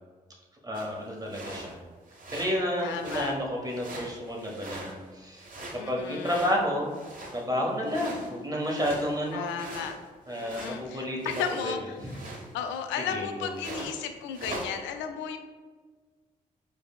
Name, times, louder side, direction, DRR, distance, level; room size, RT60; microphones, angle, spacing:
voice 1, 0.6-1.8 2.3-7.0 7.3-9.6 10.3-11.2 11.6-12.4 13.1-13.5, equal, 20° right, -1 dB, 1.4 m, -31 dB
sound 1, 0.7-0.9 1.3-1.7 2.1-2.6 2.8-3.4 3.7-5.1 5.3-7.5 7.9-10.8 11.2-11.7 12.0-12.8 13.5-14.0 14.3-14.7, right 1 dB, 45° right, 1.2 m, -42 dB
voice 2, 2.8-3.3 5.8-6.5 9.3-10.0 10.3-12.0 12.5-15.4, left 7 dB, 80° left, 7 dB, 0.4 m, -34 dB
5.0 x 3.3 x 2.4 m, 1.4 s
hypercardioid pair, 40°, 19 cm